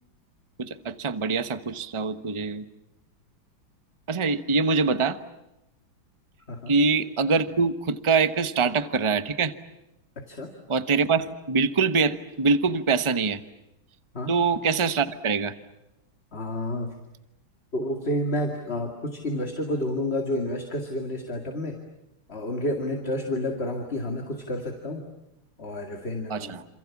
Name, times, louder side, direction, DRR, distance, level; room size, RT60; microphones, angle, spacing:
voice 1, 0.6-2.7 4.1-5.2 6.7-9.5 10.7-13.4 14.3-15.5 26.3-26.6, right 4 dB, 20° right, 11 dB, 0.8 m, -24 dB
voice 2, 16.3-16.9 17.7-21.8 22.3-25.1 25.6-26.6, left 1 dB, 30° left, 3 dB, 2.5 m, -30 dB
28.0 x 28.0 x 7.2 m, 0.89 s
omnidirectional pair, 2.2 m